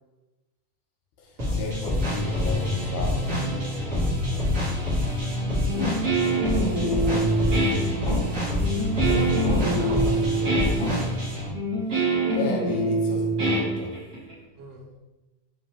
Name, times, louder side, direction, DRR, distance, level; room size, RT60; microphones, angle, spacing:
voice 1, 1.2-5.1 6.5-8.5 12.3-13.9, left 3 dB, 80° left, 0 dB, 2.2 m, -36 dB
sound 1, 1.4-11.5, left 1 dB, 65° right, 0.8 m, -26 dB
sound 2, 5.7-6.0 7.0-7.5 8.0-8.6 9.4-9.9 10.8-11.3, left 2 dB, 55° left, 1.5 m, -33 dB
Guitar, 5.7-14.3, right 2 dB, 45° right, 1.3 m, -25 dB
voice 2, 5.8-6.2 9.1-10.9 14.6-14.9, right 2 dB, 80° right, 1 dB, 2.1 m, -37 dB
5.3 x 2.9 x 3.0 m, 1.1 s
omnidirectional pair, 3.7 m